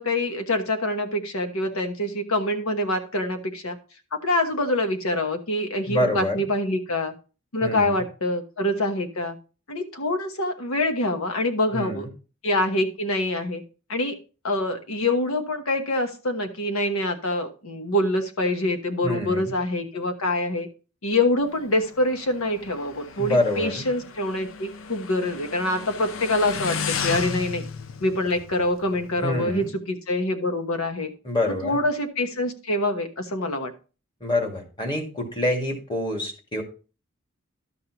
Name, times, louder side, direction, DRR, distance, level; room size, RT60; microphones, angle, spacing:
voice 1, 0.0-3.8 4.1-7.1 7.5-9.3 9.7-12.0 12.4-13.6 13.9-14.2 14.4-20.7 21.0-27.6 28.0-31.1 31.6-33.7, left 1 dB, 80° left, 6 dB, 1.2 m, -25 dB
voice 2, 5.9-6.4 7.6-8.0 11.7-12.1 19.0-19.5 23.2-23.9 29.2-29.7 31.2-31.8 34.2-36.6, left 1 dB, 25° left, 2 dB, 2.0 m, -26 dB
Motorcycle, 21.4-29.7, left 6 dB, 65° left, 0.6 m, -35 dB
12.5 x 7.3 x 2.9 m, 0.35 s
head